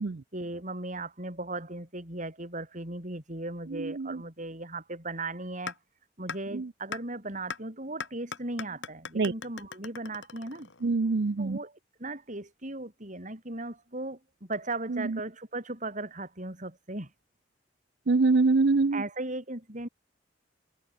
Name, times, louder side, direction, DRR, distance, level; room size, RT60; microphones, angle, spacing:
voice 1, 0.3-5.7 6.2-10.7 11.4-17.1 18.9-19.9, right 2 dB, 45° right, 6.4 m, -37 dB
voice 2, 3.7-4.2 6.5-6.7 9.1-9.3 10.8-11.6 14.9-15.2 18.1-19.0, right 3 dB, 65° right, 0.6 m, -25 dB
sound 1, 5.7-5.8 6.3-6.4 6.9-7.0 7.5-7.6 8.0-10.9, left 5 dB, 90° left, 2.2 m, -38 dB
head